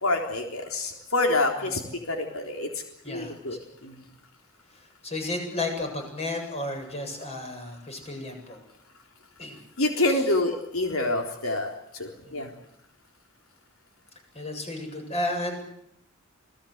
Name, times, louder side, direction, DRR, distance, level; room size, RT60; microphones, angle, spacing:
voice 1, 0.0-2.7 3.1-4.0 9.8-12.5, left 2 dB, 90° left, 3 dB, 3.8 m, -27 dB
voice 2, 5.0-8.6 9.4-9.6 12.2-12.5 14.3-15.6, left 2 dB, 30° left, 4 dB, 7.9 m, -33 dB
28.5 x 19.5 x 8.1 m, 0.74 s
head